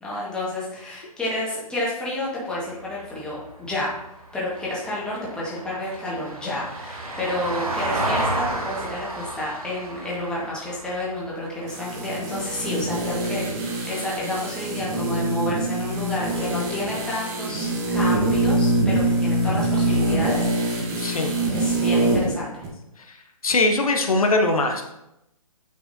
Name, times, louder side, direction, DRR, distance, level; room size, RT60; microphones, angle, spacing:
voice 1, 0.0-3.9 4.3-13.4 13.9-21.0 21.5-22.6, left 1 dB, 5° left, -6 dB, 1.6 m, -30 dB
Vehicle, 2.7-13.1 15.4-15.5, right 1 dB, 70° right, 1.3 m, -32 dB
sound 1, 11.7-22.3 22.6-22.7, right 1 dB, 25° right, 1.2 m, -24 dB
voice 2, 21.0-21.3 23.0-23.2 23.4-24.8, left 2 dB, 70° left, 4 dB, 0.9 m, -21 dB
8.6 x 4.7 x 2.7 m, 0.86 s
figure-of-eight pair, 140°, 19 cm